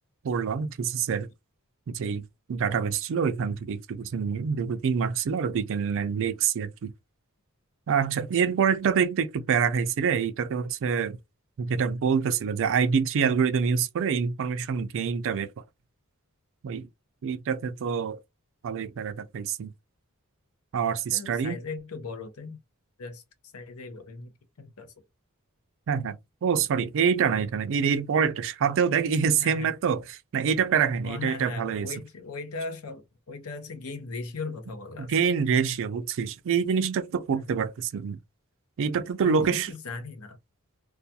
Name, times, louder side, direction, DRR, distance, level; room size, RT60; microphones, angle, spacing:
voice 1, 0.2-1.3 1.9-2.2 2.5-6.9 7.9-11.2 11.6-15.5 16.6-16.9 17.2-18.2 18.6-19.7 20.7-21.6 25.9-26.2 26.4-31.9 35.1-38.2 38.8-39.7, right 6 dB, 60° right, 0.4 m, -26 dB
voice 2, 21.1-22.6 23.0-24.9 29.4-29.8 31.0-35.1 37.3-37.5 39.2-40.4, left 4 dB, 75° left, 0.7 m, -38 dB
2.3 x 2.3 x 2.7 m
head